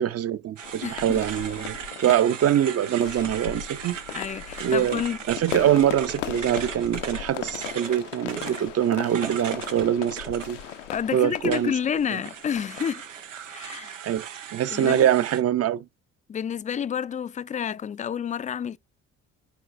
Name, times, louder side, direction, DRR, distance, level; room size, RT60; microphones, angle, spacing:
voice 1, 0.0-1.8 2.0-4.0 4.6-5.0 5.3-10.6 11.1-11.7 14.0-15.8, right 10 dB, 40° right, 0.7 m, -24 dB
sound 1, 0.6-13.5, left 11 dB, 80° left, 0.8 m, -38 dB
sound 2, 0.6-11.0 11.5-15.4, right 8 dB, 90° right, 0.7 m, -38 dB
voice 2, 0.8-1.2 2.0-2.2 4.1-5.2 10.9-13.0 13.5-14.0 14.7-15.1 16.3-18.8, left 8 dB, 20° left, 0.4 m, -29 dB
10.5 x 4.5 x 2.5 m
figure-of-eight pair, 50°, 36 cm